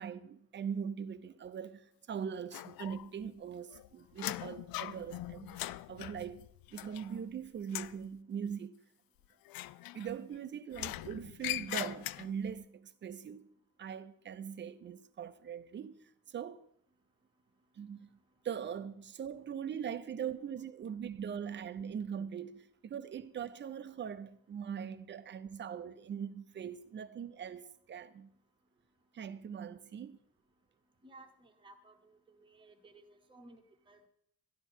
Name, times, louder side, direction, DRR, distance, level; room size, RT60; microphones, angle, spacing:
voice 1, 0.0-8.8 9.9-13.5 13.8-16.7 17.7-18.1 18.4-28.3 29.1-30.2, right 7 dB, 30° right, 0.5 m, -41 dB
sound 1, 2.5-3.3 3.6-7.3 7.6-8.0 9.5-10.3 10.7-12.5, left 16 dB, 85° left, 0.5 m, -41 dB
voice 2, 31.0-34.1, right 2 dB, 15° right, 0.9 m, -58 dB
12.5 x 11.0 x 4.4 m
cardioid pair, 155°, 35 cm